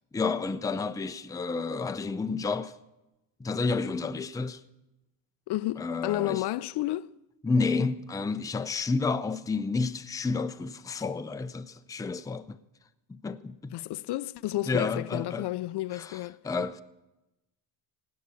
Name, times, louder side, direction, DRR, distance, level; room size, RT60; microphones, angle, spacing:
voice 1, 0.1-2.7 3.4-4.6 5.8-6.4 7.4-12.6 13.1-13.8 14.7-15.5 15.9-16.2 16.4-16.8, left 4 dB, 10° left, 0.4 m, -30 dB
voice 2, 5.5-7.1 13.7-16.4, left 16 dB, 65° left, 0.5 m, -31 dB
17.0 x 9.6 x 7.1 m
cardioid pair, 115°, 44 cm